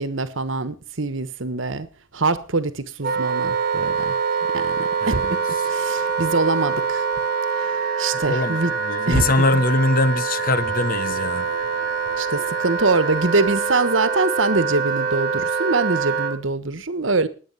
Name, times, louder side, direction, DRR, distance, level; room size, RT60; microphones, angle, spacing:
voice 1, 0.0-1.9 2.1-4.1 4.5-5.4 5.6-7.0 7.6-8.7 9.1-9.6 12.2-17.3, right 3 dB, 70° right, 1.4 m, -24 dB
Wind instrument woodwind instrument, 3.0-16.4, right 5 dB, 45° right, 2.4 m, -24 dB
voice 2, 5.0-5.4 8.3-11.5, left 2 dB, 45° left, 1.0 m, -22 dB
sound 1, 10.5-14.1 14.6-14.8, left 1 dB, 65° left, 5.6 m, -43 dB
19.0 x 8.6 x 5.7 m
head